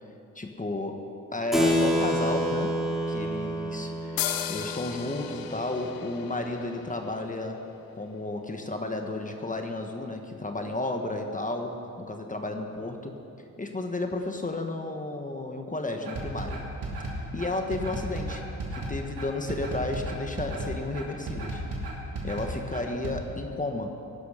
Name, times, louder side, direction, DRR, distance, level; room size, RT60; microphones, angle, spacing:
voice 1, 0.3-1.0 1.3-2.7 3.1-7.6 7.9-13.1 13.6-16.6 17.3-18.4 18.7-21.6 22.2-23.9, left 2 dB, 25° left, 4 dB, 1.4 m, -32 dB
Keyboard (musical), 1.5-7.5, equal, ahead, 2.8 m, -29 dB
sound 1, 4.2-7.7, left 11 dB, 90° left, 0.7 m, -36 dB
sound 2, 16.0-23.2, right 2 dB, 75° right, 3.0 m, -34 dB
17.5 x 11.5 x 5.1 m, 2.7 s
cardioid pair, 70°, 34 cm